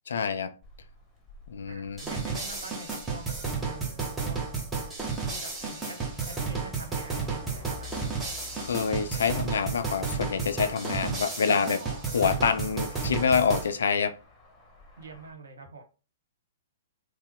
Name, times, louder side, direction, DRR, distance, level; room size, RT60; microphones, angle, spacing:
voice 1, 0.1-0.5 1.5-2.0 8.6-11.8 12.1-14.2, left 6 dB, 65° left, 0.4 m, -26 dB
Motor vehicle (road), 0.6-15.3, left 3 dB, 15° left, 1.0 m, -50 dB
voice 2, 1.7-3.2 3.6-4.4 5.2-6.0 6.3-8.2 11.5-12.0 15.0-15.8, right 3 dB, 70° right, 1.1 m, -45 dB
sound 1, 2.0-13.7, right 5 dB, 10° right, 0.9 m, -32 dB
3.1 x 2.0 x 3.6 m
figure-of-eight pair, 115°, 0 cm